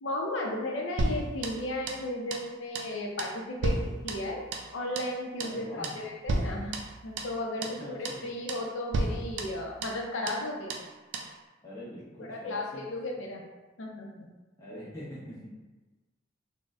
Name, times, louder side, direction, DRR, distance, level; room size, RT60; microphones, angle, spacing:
voice 1, 0.0-4.5 4.7-6.7 7.0-10.8 12.3-13.4 13.8-14.3, left 1 dB, 70° left, 0 dB, 0.5 m, -34 dB
sound 1, 1.0-2.1 2.3-2.5 2.7-2.9 3.2-4.7 5.0-5.1 5.4-5.6 5.8-6.0 6.3-7.4 7.6-7.8 8.0-8.2 8.5-8.7 8.9-10.0 10.3-10.4 10.7-10.9 11.1-11.3, right 2 dB, 65° right, 0.3 m, -33 dB
voice 2, 5.4-6.0 7.6-8.2 11.6-12.8 14.6-15.5, equal, 15° left, -8 dB, 0.8 m, -44 dB
3.8 x 2.0 x 2.3 m, 1.2 s
head